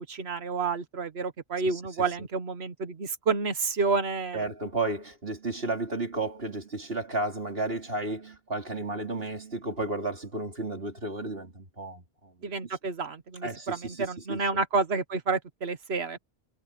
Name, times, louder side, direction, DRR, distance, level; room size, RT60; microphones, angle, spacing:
voice 1, 0.1-4.5 12.4-16.2, right 4 dB, 85° right, 1.5 m, -29 dB
voice 2, 4.3-12.3 12.6-12.8 13.4-14.4, right 2 dB, 70° right, 3.6 m, -33 dB
omnidirectional pair, 1.0 m